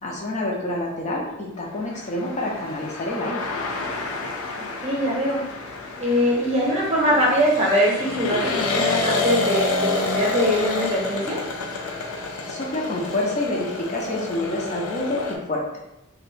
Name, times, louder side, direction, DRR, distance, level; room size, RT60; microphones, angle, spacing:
voice 1, 0.0-3.4 12.5-15.6, left 1 dB, 35° left, -2 dB, 0.5 m, -27 dB
sound 1, 1.9-15.4, left 3 dB, 85° left, 0.5 m, -29 dB
voice 2, 4.8-5.4 6.0-11.4, equal, 30° right, -3 dB, 0.7 m, -22 dB
2.5 x 2.2 x 3.8 m, 0.88 s
head